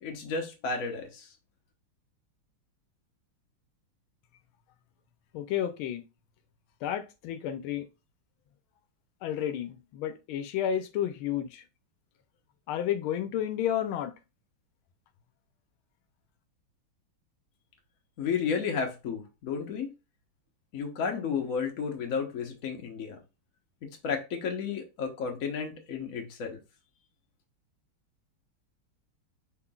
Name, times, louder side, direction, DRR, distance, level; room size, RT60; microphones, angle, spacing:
voice 1, 0.0-1.3 18.2-19.9 20.7-23.2 24.0-26.6, left 6 dB, 50° left, 1.2 m, -32 dB
voice 2, 5.3-6.0 6.8-7.9 9.2-11.6 12.7-14.1, left 10 dB, 85° left, 1.4 m, -31 dB
5.7 x 3.7 x 2.3 m
omnidirectional pair, 2.3 m